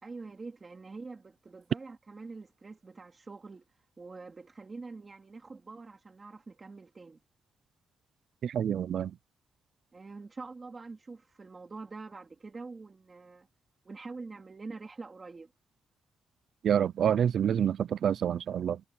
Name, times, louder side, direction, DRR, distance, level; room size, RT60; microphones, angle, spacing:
voice 1, 0.0-3.6 4.0-7.2 9.9-13.5 13.8-15.5, right 3 dB, 25° right, 3.2 m, -45 dB
voice 2, 8.4-9.1 16.6-18.8, right 9 dB, 55° right, 0.5 m, -27 dB
wide cardioid pair, 170°, 0 cm